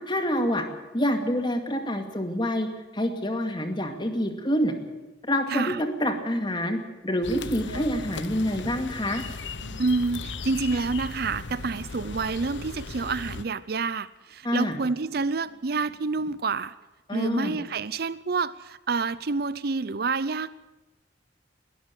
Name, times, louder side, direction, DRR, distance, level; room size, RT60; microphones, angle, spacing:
voice 1, 0.1-0.6 0.9-2.7 2.9-4.7 5.3-9.2 14.4-14.8 17.1-17.6, equal, 25° left, 6 dB, 2.3 m, -27 dB
voice 2, 5.5-5.8 9.8-16.7 17.1-20.5, right 4 dB, 55° right, 17 dB, 0.6 m, -28 dB
sound 1, 7.2-13.4, left 4 dB, 75° left, 1.0 m, -37 dB
sound 2, 7.6-8.8 9.4-12.9 13.2-13.9 14.5-16.5, equal, 85° right, 2.7 m, -47 dB
21.0 x 13.5 x 9.8 m, 1.1 s
head